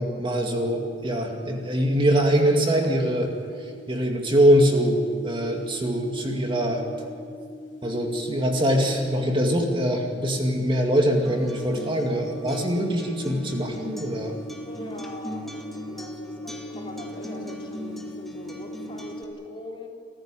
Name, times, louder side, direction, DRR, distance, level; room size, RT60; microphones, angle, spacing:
voice 1, 0.0-3.3 3.6-6.9 7.8-14.3, equal, 30° right, 2 dB, 2.2 m, -23 dB
sound 1, 0.6-19.3, equal, 85° left, 3.5 m, -41 dB
Acoustic guitar, 11.2-19.2, equal, ahead, 2.1 m, -40 dB
voice 2, 14.6-19.9, left 1 dB, 30° left, 0 dB, 3.6 m, -41 dB
28.5 x 15.0 x 9.0 m, 2.2 s
head